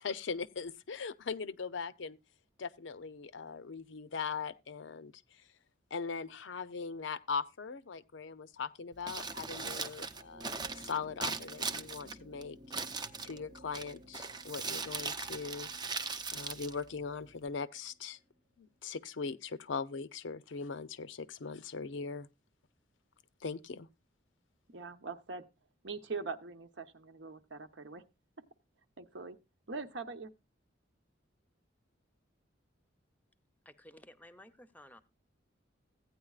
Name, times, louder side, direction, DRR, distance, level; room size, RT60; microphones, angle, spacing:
voice 1, 0.0-2.2 2.6-5.4 5.9-10.5 10.8-12.6 13.2-15.7 16.3-18.2 18.6-22.3 23.4-23.9, left 5 dB, 75° left, 0.6 m, -40 dB
Crumpling crinkling, 8.9-17.5, right 4 dB, 25° right, 0.6 m, -40 dB
sound 1, 10.0-18.7 19.9-20.0, equal, 40° right, 0.9 m, -57 dB
voice 2, 24.7-25.4 25.8-28.0 29.0-29.4 29.7-30.3, right 4 dB, 70° right, 0.9 m, -42 dB
voice 3, 33.6-35.0, left 1 dB, 10° left, 0.7 m, -55 dB
15.5 x 9.3 x 2.4 m
head